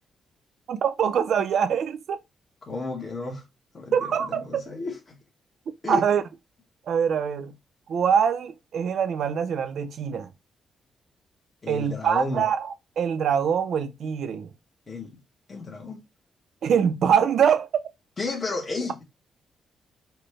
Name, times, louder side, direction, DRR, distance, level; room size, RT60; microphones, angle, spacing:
voice 1, 0.7-2.2 3.9-4.6 5.9-6.2 6.9-7.5 7.9-10.3 11.7-12.6 13.0-14.5 16.6-17.8, right 7 dB, 65° right, 0.5 m, -24 dB
voice 2, 2.6-3.4 3.7-5.2 5.8-6.0 11.6-12.5 14.9-15.2 15.5-16.0 18.2-19.0, left 3 dB, 25° left, 1.0 m, -32 dB
4.2 x 2.2 x 3.2 m
cardioid pair, 130°, 0 cm